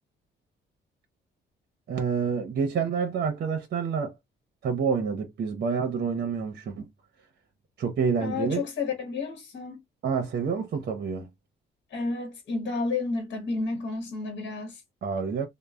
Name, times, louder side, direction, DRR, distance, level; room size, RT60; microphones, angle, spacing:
voice 1, 1.9-4.1 4.6-6.9 7.8-8.6 10.0-11.3 15.0-15.5, right 6 dB, 55° right, 0.7 m, -28 dB
voice 2, 8.2-9.8 11.9-14.8, left 4 dB, 60° left, 1.0 m, -31 dB
3.0 x 2.0 x 2.3 m
cardioid pair, 90°, 20 cm